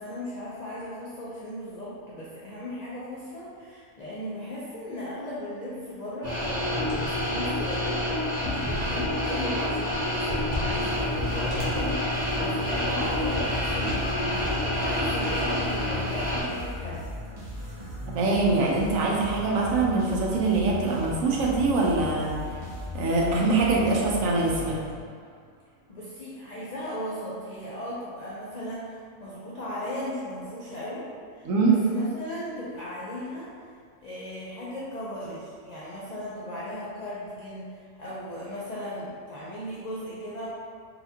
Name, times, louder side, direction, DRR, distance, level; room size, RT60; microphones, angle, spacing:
voice 1, 0.0-17.0 25.9-33.7 34.0-40.5, left 1 dB, 65° left, -8 dB, 0.4 m, -37 dB
sound 1, 6.2-16.4, left 1 dB, 35° right, 0.8 m, -28 dB
sound 2, 10.8-25.4, left 1 dB, 55° right, 0.3 m, -37 dB
voice 2, 18.1-22.3 22.9-24.8 31.4-31.7, right 3 dB, 80° right, -3 dB, 1.0 m, -23 dB
4.2 x 2.4 x 2.7 m, 2.1 s
omnidirectional pair, 1.4 m